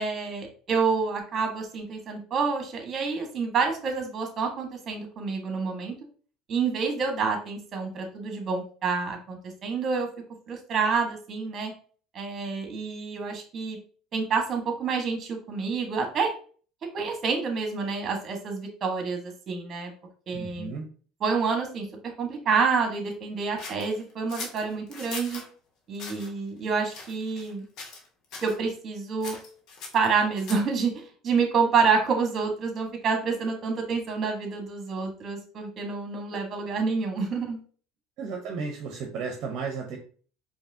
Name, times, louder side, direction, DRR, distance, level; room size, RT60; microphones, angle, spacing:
voice 1, 0.0-5.9 6.5-10.1 10.5-11.7 12.1-13.8 14.1-16.3 16.9-19.9 20.3-20.8 21.2-25.4 25.9-27.6 28.4-29.4 29.9-37.6, right 5 dB, 40° right, 3 dB, 1.4 m, -28 dB
voice 2, 20.3-20.9 38.2-40.0, right 5 dB, 60° right, 2 dB, 0.8 m, -34 dB
sound 1, 23.6-25.5 25.9-26.3 26.9-27.5 27.8-28.1 28.3-28.6 29.2-30.8, left 4 dB, 60° left, 1.2 m, -40 dB
4.7 x 3.0 x 2.8 m, 0.42 s
supercardioid pair, 100°, 0 cm